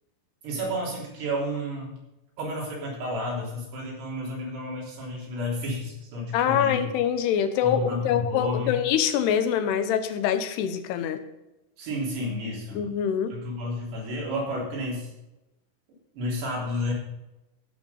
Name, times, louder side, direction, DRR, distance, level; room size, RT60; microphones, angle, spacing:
voice 1, 0.4-2.0 2.4-6.9 7.6-8.8 11.8-12.9 13.3-15.1 16.1-16.9, left 1 dB, 85° right, -3 dB, 5.7 m, -31 dB
voice 2, 6.3-11.2 12.7-13.3, left 9 dB, 85° left, 9 dB, 2.9 m, -25 dB
14.5 x 6.4 x 5.5 m, 0.97 s
omnidirectional pair, 4.7 m